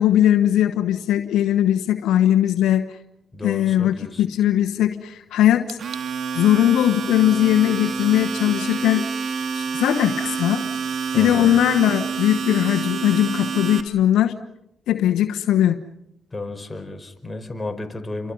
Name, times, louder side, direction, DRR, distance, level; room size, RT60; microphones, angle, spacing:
voice 1, 0.0-2.8 3.4-5.8 6.3-9.1 9.5-10.6 11.1-14.4 14.9-15.8, left 12 dB, 80° left, 7 dB, 1.1 m, -19 dB
voice 2, 3.3-4.2 11.1-11.6 16.3-18.3, left 2 dB, 20° left, 5 dB, 4.9 m, -33 dB
Domestic sounds home sounds, 5.7-13.8, right 5 dB, 65° right, 2.4 m, -28 dB
29.5 x 24.0 x 5.5 m, 0.79 s
supercardioid pair, 55°, 0 cm